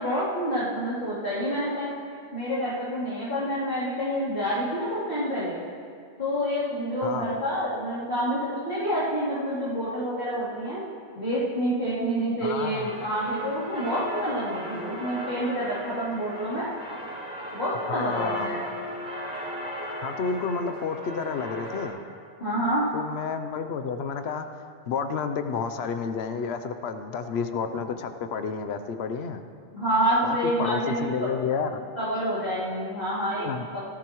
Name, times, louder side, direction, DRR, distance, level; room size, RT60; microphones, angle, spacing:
voice 1, 0.0-1.9 2.3-5.6 6.2-10.8 11.2-16.7 17.5-18.6 22.4-22.8 29.7-31.3 32.0-33.8, equal, 60° left, -14 dB, 3.5 m, -28 dB
voice 2, 7.0-7.4 12.4-12.9 17.9-18.5 20.0-22.0 22.9-29.4 30.2-31.8 33.3-33.7, left 5 dB, 80° left, 8 dB, 0.9 m, -30 dB
sound 1, 12.6-21.9, equal, 5° right, 4.1 m, -36 dB
18.0 x 14.5 x 3.1 m, 2.3 s
omnidirectional pair, 1.1 m